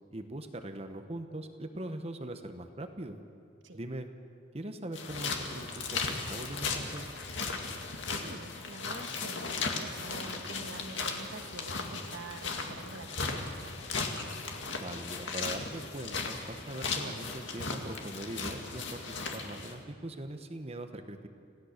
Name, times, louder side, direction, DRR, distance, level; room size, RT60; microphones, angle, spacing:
voice 1, 0.1-3.2 3.7-4.1 4.5-7.1 14.8-21.3, right 1 dB, 35° right, 7 dB, 1.2 m, -41 dB
sound 1, 4.9-19.8, left 4 dB, 80° left, 2.1 m, -36 dB
voice 2, 7.7-13.8, right 3 dB, 85° right, 7 dB, 1.4 m, -47 dB
27.5 x 16.5 x 6.7 m, 2.4 s
head